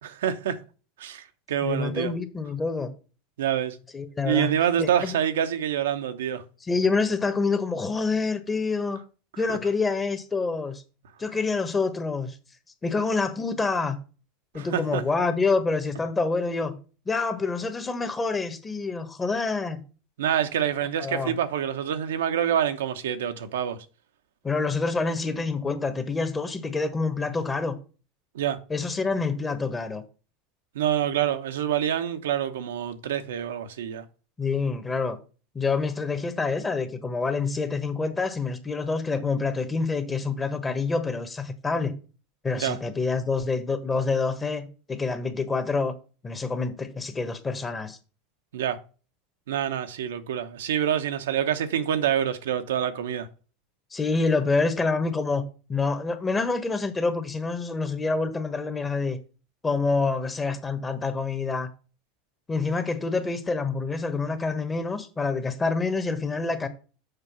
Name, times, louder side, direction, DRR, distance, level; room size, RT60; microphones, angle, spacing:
voice 1, 0.0-0.6 1.0-2.1 3.4-3.8 4.2-6.4 9.5-9.6 14.5-15.0 20.2-23.8 28.3-28.6 30.7-34.0 42.6-42.8 48.5-48.8 49.5-53.3, right 10 dB, 85° right, 0.9 m, -26 dB
voice 2, 1.6-2.9 3.9-5.2 6.6-9.0 9.4-10.8 11.2-12.3 12.8-14.0 14.5-16.8 17.1-19.8 21.0-21.4 24.4-27.8 28.7-30.0 34.4-35.2 35.5-41.9 42.4-45.9 46.2-48.0 53.9-55.4 55.7-59.2 59.6-61.7 62.5-66.7, left 4 dB, 20° left, 1.4 m, -27 dB
6.7 x 4.6 x 6.0 m
hypercardioid pair, 100°, 0 cm